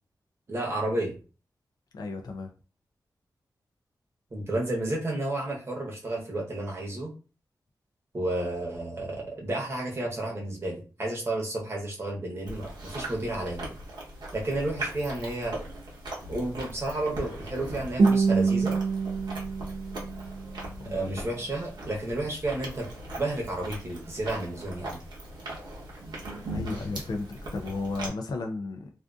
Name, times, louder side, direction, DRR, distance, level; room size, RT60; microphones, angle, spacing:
voice 1, 0.5-1.1 4.3-7.1 8.1-13.7 14.3-15.6 16.3-18.8 20.8-22.9 23.2-25.0, right 2 dB, 35° right, -2 dB, 0.8 m, -31 dB
voice 2, 1.9-2.5 20.8-21.2 26.5-28.9, left 3 dB, 65° left, 2 dB, 0.4 m, -34 dB
Chewing mastication, 12.5-28.1, right 1 dB, 75° right, 0.8 m, -39 dB
Guitar, 18.0-21.0, right 4 dB, 50° right, 0.4 m, -26 dB
2.5 x 2.4 x 2.3 m, 0.35 s
wide cardioid pair, 135°, 7 cm